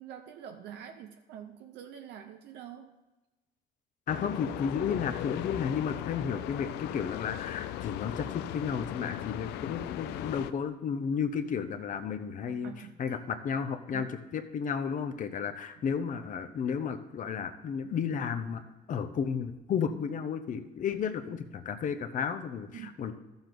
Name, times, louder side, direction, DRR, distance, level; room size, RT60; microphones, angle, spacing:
voice 1, 0.0-3.0 12.5-13.2 13.9-14.1 22.7-23.0, right 9 dB, 80° right, 5 dB, 0.8 m, -46 dB
sound 1, 4.1-10.5, left 13 dB, 85° left, 0.5 m, -38 dB
voice 2, 4.1-12.7 13.0-18.6 18.9-23.1, left 7 dB, 50° left, 8 dB, 0.9 m, -33 dB
13.0 x 7.2 x 3.9 m, 1.1 s
cardioid pair, 110°, 17 cm